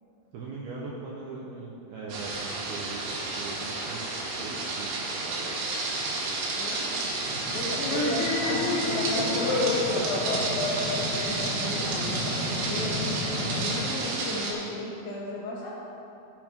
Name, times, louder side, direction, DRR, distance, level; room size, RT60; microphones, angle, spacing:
voice 1, 0.3-5.6 5.9-6.4 7.5-8.0, right 3 dB, 75° right, -4 dB, 2.3 m, -41 dB
sound 1, 2.1-14.5, right 3 dB, 90° right, 4.3 m, -31 dB
voice 2, 6.5-7.1 7.5-10.5 11.2-15.7, left 1 dB, 60° left, -6 dB, 3.0 m, -35 dB
sound 2, 7.2-13.7, left 1 dB, 35° left, 1.6 m, -36 dB
sound 3, 7.7-12.4, left 3 dB, 75° left, 1.7 m, -29 dB
15.5 x 8.5 x 3.7 m, 2.8 s
omnidirectional pair, 5.5 m